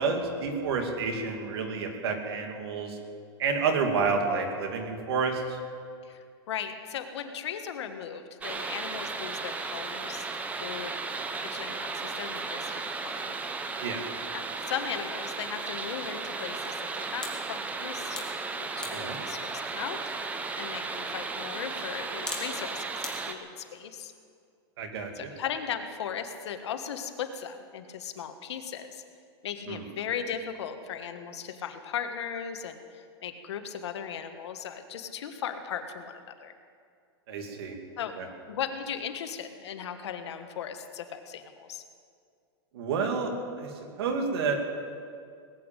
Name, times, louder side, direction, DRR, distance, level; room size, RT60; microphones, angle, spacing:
voice 1, 0.0-3.0 3.4-5.6 13.8-14.1 18.9-19.2 24.8-25.1 29.7-29.8 37.3-37.8 38.2-38.3 42.7-43.7 44.0-44.8, right 4 dB, 65° right, 4 dB, 2.4 m, -29 dB
voice 2, 6.0-10.9 11.4-13.4 14.3-18.3 18.6-20.0 20.6-24.1 25.1-29.0 29.4-36.5 38.0-38.2 38.5-41.8, left 8 dB, 80° left, 7 dB, 1.5 m, -37 dB
sound 1, 8.4-23.3, right 4 dB, 10° right, 0.7 m, -35 dB
sound 2, 15.2-23.1, left 3 dB, 5° left, 1.7 m, -47 dB
19.0 x 8.3 x 8.9 m, 2.3 s
supercardioid pair, 165°, 14 cm